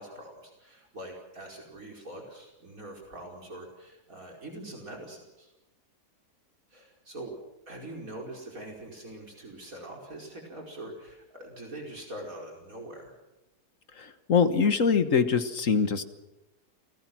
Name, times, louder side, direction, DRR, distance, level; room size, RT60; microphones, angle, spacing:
voice 1, 0.0-5.5 6.7-7.3 7.7-13.2, right 1 dB, 60° right, 0 dB, 5.5 m, -43 dB
voice 2, 14.0-16.0, left 6 dB, 55° left, 10 dB, 1.7 m, -24 dB
29.0 x 19.5 x 6.1 m, 1.0 s
omnidirectional pair, 1.7 m